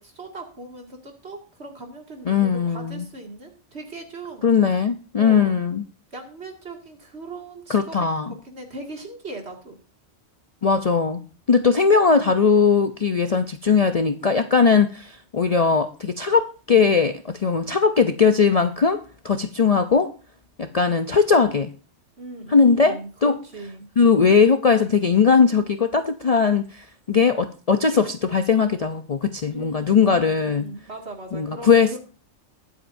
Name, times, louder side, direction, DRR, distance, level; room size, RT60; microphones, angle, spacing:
voice 1, 0.0-4.7 5.2-5.6 6.1-9.8 22.2-23.9 29.5-32.0, right 2 dB, 60° right, 2 dB, 2.5 m, -39 dB
voice 2, 2.3-3.0 4.4-5.8 7.7-8.3 10.6-20.1 20.6-21.7 22.5-23.4 24.0-30.6 31.3-32.0, left 5 dB, 40° left, 7 dB, 0.5 m, -19 dB
22.0 x 7.9 x 2.6 m, 0.37 s
omnidirectional pair, 1.2 m